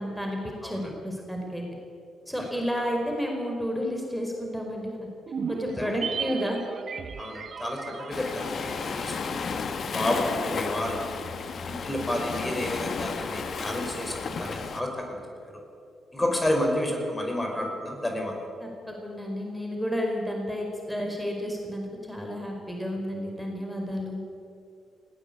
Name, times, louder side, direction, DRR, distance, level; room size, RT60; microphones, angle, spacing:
voice 1, 0.0-1.6 2.3-4.9 5.5-6.6 18.6-24.2, equal, ahead, 1 dB, 4.9 m, -31 dB
voice 2, 0.6-0.9 2.4-2.5 5.8-5.9 7.2-9.3 9.9-11.3 11.7-15.2 15.5-15.6 16.1-18.4, left 1 dB, 20° left, 2 dB, 5.3 m, -30 dB
sound 1, 5.3-9.8 10.0-10.1, right 6 dB, 55° right, 1.1 m, -36 dB
Waves surf, 8.1-14.8, left 5 dB, 50° left, 1.5 m, -33 dB
19.5 x 17.0 x 8.6 m, 2.5 s
hypercardioid pair, 40°, 0 cm